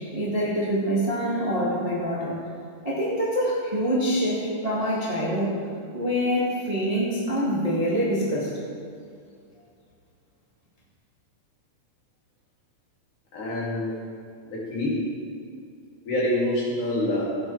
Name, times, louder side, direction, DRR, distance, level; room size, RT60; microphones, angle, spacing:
voice 1, 0.0-2.4 2.8-5.6 5.9-8.5, equal, 20° right, -6 dB, 1.0 m, -25 dB
voice 2, 13.3-14.0 14.4-15.1 16.0-17.3, left 1 dB, 70° left, -7 dB, 4.2 m, -26 dB
15.0 x 8.7 x 3.4 m, 2.3 s
omnidirectional pair, 3.7 m